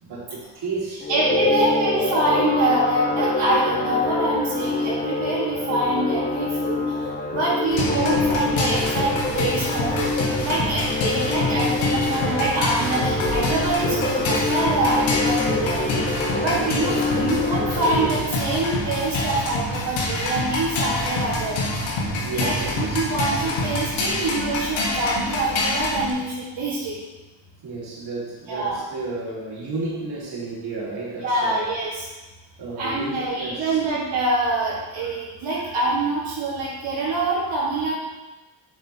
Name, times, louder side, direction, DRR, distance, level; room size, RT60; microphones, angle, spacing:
voice 1, 0.0-1.1 1.4-1.6 7.3-7.5 16.5-16.7 22.0-23.2 27.6-31.6 32.6-33.8, right 3 dB, 55° right, -5 dB, 2.4 m, -33 dB
sound 1, 1.0-18.2, left 3 dB, 20° left, 1.4 m, -26 dB
voice 2, 1.1-6.9 7.2-16.1 16.4-21.6 22.3-27.0 28.5-28.8 31.2-32.1 32.8-37.9, right 2 dB, 70° right, -8 dB, 2.0 m, -25 dB
sound 2, 7.7-26.1, left 2 dB, 75° left, 1.6 m, -26 dB
6.7 x 6.7 x 3.0 m, 1.1 s
cardioid pair, 85°, 46 cm